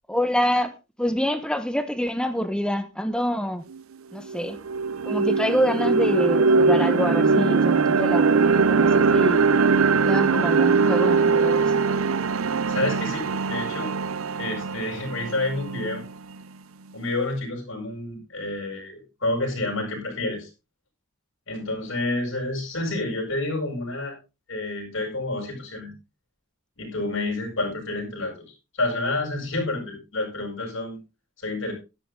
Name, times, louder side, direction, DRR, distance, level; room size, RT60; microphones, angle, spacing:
voice 1, 0.1-3.6 4.1-4.6 5.0-9.4 9.9-11.7, equal, 5° left, 1.1 m, -26 dB
sound 1, 3.7-3.8 4.3-16.3, right 4 dB, 80° right, 0.6 m, -21 dB
voice 2, 12.7-13.9 14.4-16.0 16.9-20.5 21.5-24.2 24.5-25.9 26.8-28.4 28.7-31.0 31.4-31.7, left 2 dB, 65° left, 7.5 m, -29 dB
13.0 x 11.5 x 3.8 m
head